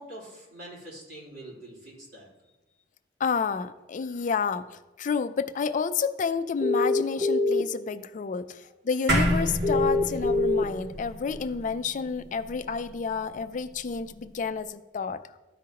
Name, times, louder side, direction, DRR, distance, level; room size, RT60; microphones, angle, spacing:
voice 1, 0.0-2.3, right 1 dB, 60° right, -5 dB, 3.0 m, -44 dB
voice 2, 3.2-15.2, left 5 dB, 45° left, 11 dB, 0.4 m, -30 dB
sound 1, 6.6-7.6 9.6-10.6, left 2 dB, 35° right, 0.7 m, -23 dB
sound 2, 9.1-13.7, equal, 80° right, 1.7 m, -30 dB
13.0 x 5.1 x 2.9 m, 1.1 s
head